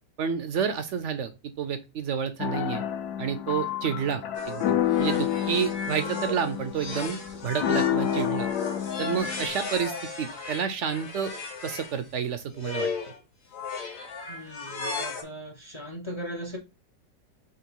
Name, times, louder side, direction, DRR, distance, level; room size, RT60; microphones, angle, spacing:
voice 1, 0.2-1.3 1.6-2.8 3.2-8.5 9.0-11.3 11.6-12.9, right 7 dB, 70° right, 0.7 m, -30 dB
sound 1, 2.4-9.5, left 10 dB, 70° left, 1.2 m, -29 dB
sound 2, 4.3-12.0 12.5-13.2 13.5-15.2, left 4 dB, 55° left, 1.5 m, -35 dB
voice 2, 14.3-16.6, equal, 40° left, 0.4 m, -38 dB
3.8 x 3.0 x 4.5 m
omnidirectional pair, 1.8 m